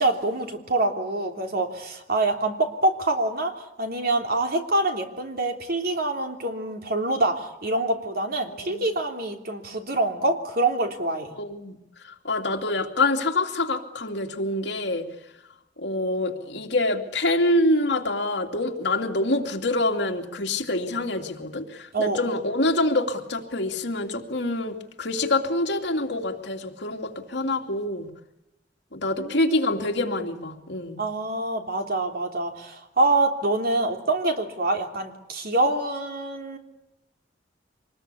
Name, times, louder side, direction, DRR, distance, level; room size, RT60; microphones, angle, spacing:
voice 1, 0.0-11.3 21.9-22.4 29.2-29.5 31.0-36.6, right 2 dB, 55° right, 4 dB, 3.3 m, -25 dB
voice 2, 8.5-8.9 11.4-11.7 12.2-15.1 15.8-28.1 28.9-31.0, left 2 dB, 70° left, 3 dB, 2.7 m, -26 dB
25.5 x 20.0 x 8.4 m, 0.93 s
head